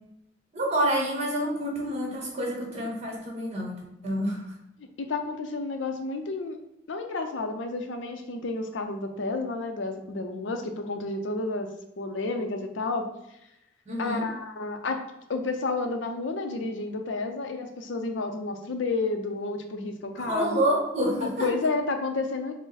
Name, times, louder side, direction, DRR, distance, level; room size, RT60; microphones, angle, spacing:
voice 1, 0.5-4.5 13.9-14.3 20.2-21.5, right 1 dB, 35° right, -2 dB, 1.2 m, -28 dB
voice 2, 5.0-6.6 6.9-11.7 12.0-13.1 14.0-15.0 15.3-20.6 21.2-22.5, left 3 dB, 85° left, 6 dB, 0.6 m, -31 dB
4.7 x 2.1 x 4.0 m, 0.84 s
head